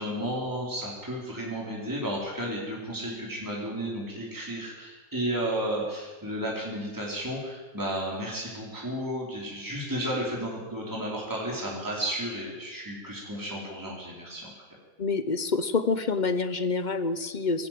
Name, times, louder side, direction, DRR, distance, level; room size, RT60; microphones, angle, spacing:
voice 1, 0.0-14.5, right 1 dB, 10° right, -4 dB, 4.6 m, -33 dB
voice 2, 15.0-17.7, left 4 dB, 35° left, 12 dB, 0.8 m, -27 dB
22.0 x 15.5 x 7.8 m, 1.2 s
omnidirectional pair, 1.9 m